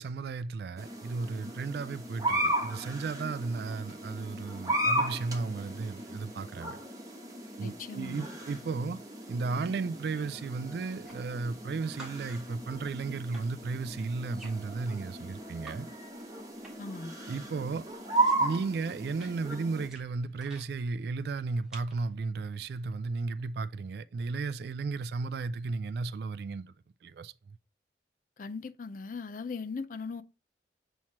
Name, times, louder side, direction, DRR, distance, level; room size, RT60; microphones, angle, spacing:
voice 1, 0.0-6.8 7.6-9.0 9.3-15.9 17.3-17.9 18.4-26.7 27.0-27.3, right 4 dB, 60° right, 0.3 m, -34 dB
sound 1, 0.8-19.9, right 2 dB, 20° right, 1.1 m, -35 dB
voice 2, 7.6-8.2 16.8-17.1 28.4-30.2, left 4 dB, 45° left, 0.4 m, -39 dB
sound 2, 10.8-11.7 12.0-15.8 16.1-17.0 17.3-20.7 21.3-22.0, right 1 dB, 5° right, 1.6 m, -53 dB
7.3 x 3.1 x 4.2 m
head